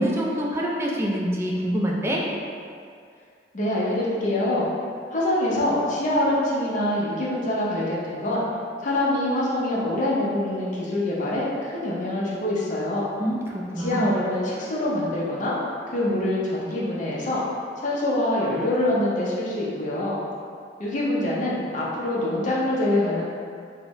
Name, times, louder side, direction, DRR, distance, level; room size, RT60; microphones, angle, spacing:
voice 1, 0.0-2.2 13.2-14.1, equal, 15° right, -3 dB, 0.3 m, -25 dB
voice 2, 3.5-4.7 5.1-8.5 8.8-13.1 13.8-15.6 15.9-17.4 17.8-20.2 20.8-23.2, left 1 dB, 45° left, -6 dB, 0.6 m, -25 dB
3.8 x 2.1 x 2.9 m, 2.3 s
head